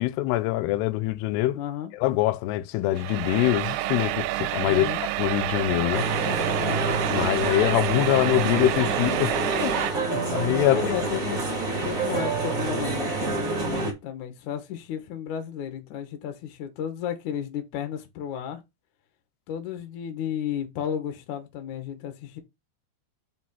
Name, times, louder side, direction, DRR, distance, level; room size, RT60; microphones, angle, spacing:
voice 1, 0.0-1.6 2.0-4.9 5.2-6.1 7.1-9.4 9.6-10.8, left 15 dB, 85° left, 2.7 m, -24 dB
voice 2, 1.5-1.9 4.7-5.0 10.7-11.4 11.8-18.6 19.5-22.4, left 9 dB, 60° left, 2.3 m, -33 dB
sound 1, 2.9-9.9, right 15 dB, 85° right, 2.6 m, -29 dB
sound 2, 5.9-13.9, right 3 dB, 25° right, 2.1 m, -27 dB
5.7 x 5.2 x 5.7 m
omnidirectional pair, 4.7 m